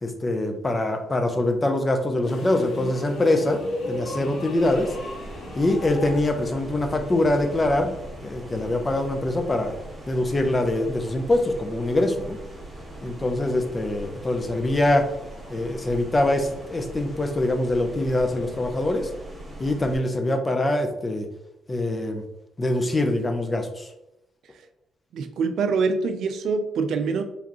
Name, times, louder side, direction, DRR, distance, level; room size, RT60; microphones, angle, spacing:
voice 1, 0.0-3.6 3.9-4.9 5.6-7.9 8.2-9.7 10.1-12.4 13.0-15.1 15.5-19.1 19.6-21.3 21.7-22.2 22.6-23.9, left 1 dB, 25° left, 0.7 m, -24 dB
sound 1, 2.2-17.3, left 1 dB, 65° left, 1.4 m, -39 dB
sound 2, 4.6-20.0, right 1 dB, 15° right, 1.4 m, -41 dB
voice 2, 25.1-27.2, right 4 dB, 70° right, 0.5 m, -24 dB
4.7 x 3.4 x 3.0 m
cardioid pair, 90°, 0 cm